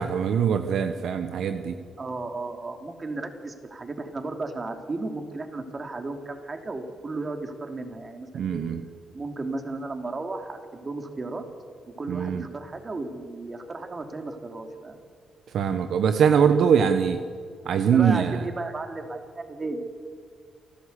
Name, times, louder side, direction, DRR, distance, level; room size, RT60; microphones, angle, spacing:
voice 1, 0.0-1.8 8.3-8.8 12.1-12.4 15.5-17.2 17.6-18.5, right 7 dB, 70° right, 8 dB, 1.1 m, -22 dB
voice 2, 2.0-8.6 9.1-11.4 12.0-15.0 17.9-19.8, right 3 dB, 35° right, 5 dB, 3.2 m, -34 dB
28.5 x 12.0 x 8.3 m, 2.1 s
supercardioid pair, 60°, 0 cm